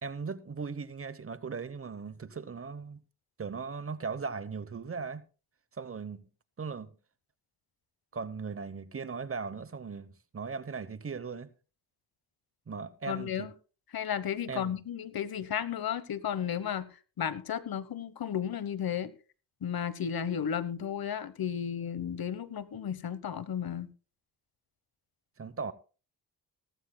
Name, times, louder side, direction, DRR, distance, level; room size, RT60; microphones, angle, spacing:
voice 1, 0.0-3.0 3.4-5.2 5.8-6.3 6.6-7.0 8.1-11.5 12.7-13.5 14.5-14.7 25.4-25.7, right 5 dB, 35° right, 1.0 m, -38 dB
voice 2, 13.1-13.5 13.9-16.9 17.2-19.1 19.6-23.9, left 8 dB, 60° left, 1.2 m, -33 dB
17.5 x 14.5 x 2.3 m
supercardioid pair, 60°, 41 cm